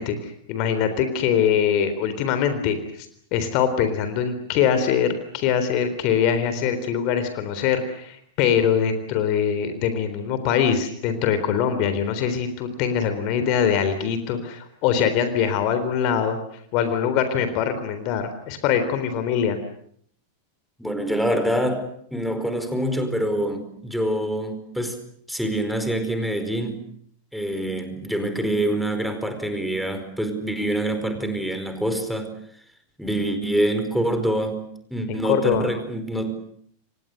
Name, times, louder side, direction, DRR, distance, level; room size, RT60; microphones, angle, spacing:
voice 1, 0.0-16.4 16.7-19.6 35.1-35.7, left 8 dB, 45° left, 10 dB, 3.8 m, -23 dB
voice 2, 20.8-25.0 25.3-26.8 27.3-32.4 33.0-34.6 34.9-36.4, right 1 dB, ahead, 8 dB, 4.8 m, -25 dB
30.0 x 26.0 x 6.7 m, 0.65 s
figure-of-eight pair, 90°, 0 cm